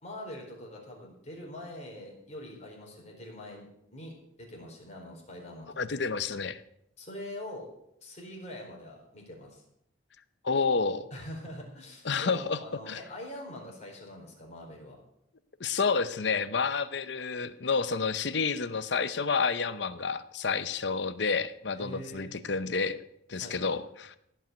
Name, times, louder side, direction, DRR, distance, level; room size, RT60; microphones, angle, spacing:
voice 1, 0.0-4.1 4.4-6.1 7.0-7.7 8.0-9.6 11.1-15.0 21.7-22.3 23.4-23.8, left 1 dB, 35° left, -1 dB, 4.4 m, -44 dB
voice 2, 5.8-6.6 10.4-11.1 12.0-12.6 12.9-13.0 15.6-23.0 23.3-24.1, left 5 dB, 65° left, 13 dB, 0.8 m, -29 dB
16.5 x 5.7 x 9.1 m, 0.78 s
head